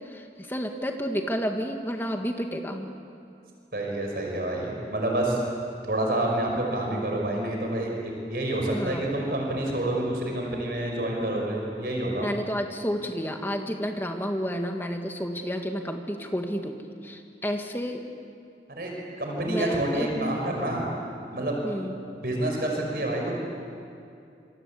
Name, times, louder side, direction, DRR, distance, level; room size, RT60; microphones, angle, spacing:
voice 1, 0.1-2.9 8.7-9.1 12.1-18.1 19.5-20.4 21.6-22.0, equal, 10° left, 4 dB, 1.9 m, -31 dB
voice 2, 3.7-5.4 5.9-12.3 18.8-18.9 19.2-20.9 21.3-21.6 22.2-23.3, right 1 dB, 60° right, 0 dB, 5.5 m, -28 dB
27.0 x 24.5 x 8.5 m, 2.6 s
head